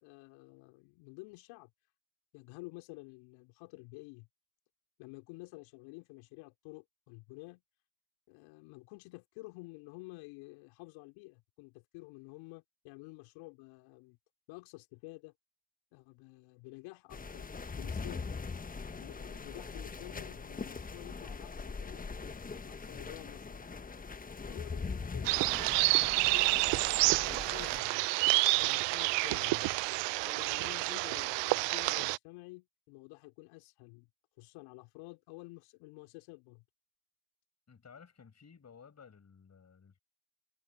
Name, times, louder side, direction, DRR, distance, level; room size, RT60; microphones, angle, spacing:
voice 1, 0.0-1.7 2.3-4.3 5.0-7.6 8.3-14.2 14.5-15.3 15.9-18.3 18.9-22.0 22.5-23.6 24.5-25.3 25.9-26.7 27.0-28.1 28.6-29.7 30.3-34.1 34.4-36.6, left 25 dB, 70° left, 3.3 m, -50 dB
sound 1, 17.1-27.8, left 4 dB, 15° left, 1.2 m, -42 dB
sound 2, 25.2-32.2, right 25 dB, 60° right, 0.7 m, -29 dB
voice 2, 37.7-40.0, left 6 dB, 30° left, 6.3 m, -56 dB
hypercardioid pair, 60°, 49 cm